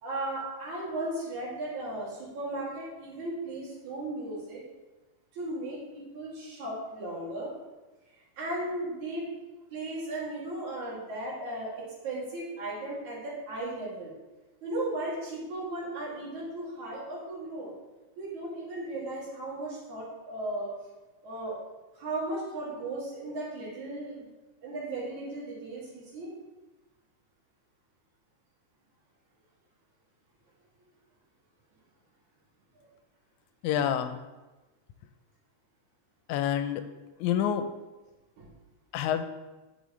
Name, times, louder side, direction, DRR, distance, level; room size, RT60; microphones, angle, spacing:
voice 1, 0.0-4.6 5.3-7.5 8.4-9.3 9.7-14.1 14.6-17.7 18.2-20.7 21.2-21.6 21.9-24.3 24.6-26.3 32.8-32.9 38.4-38.5, right 1 dB, 75° right, -6 dB, 3.9 m, -36 dB
voice 2, 33.6-34.2 36.3-36.8 37.2-37.7 38.9-39.2, left 9 dB, 85° left, 10 dB, 2.0 m, -27 dB
10.0 x 7.0 x 3.1 m, 1.1 s
omnidirectional pair, 3.4 m